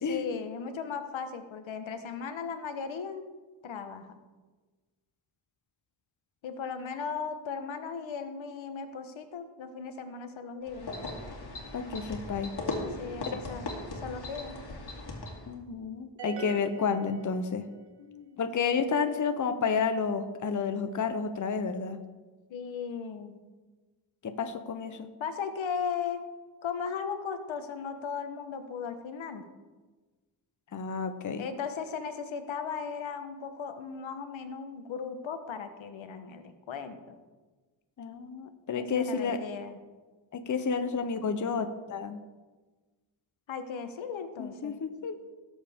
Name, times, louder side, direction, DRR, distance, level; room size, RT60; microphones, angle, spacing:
voice 1, 0.1-3.3 3.6-4.1 6.4-10.9 12.8-13.6 14.0-14.6 18.0-18.5 22.5-23.4 25.2-26.2 26.6-29.4 31.4-37.1 38.7-39.8 43.5-44.8, left 6 dB, 85° left, 8 dB, 1.1 m, -37 dB
sound 1, 10.7-15.5, left 2 dB, 55° left, 2.3 m, -38 dB
voice 2, 11.7-12.5 13.3-13.4 15.5-17.7 18.4-22.0 24.2-25.1 30.7-31.5 38.0-39.4 40.3-42.2 44.4-45.2, left 5 dB, 40° left, 8 dB, 0.8 m, -31 dB
sound 2, 16.2-17.9, right 9 dB, 65° right, 1.0 m, -43 dB
17.0 x 7.4 x 3.5 m, 1.3 s
wide cardioid pair, 135°, 46 cm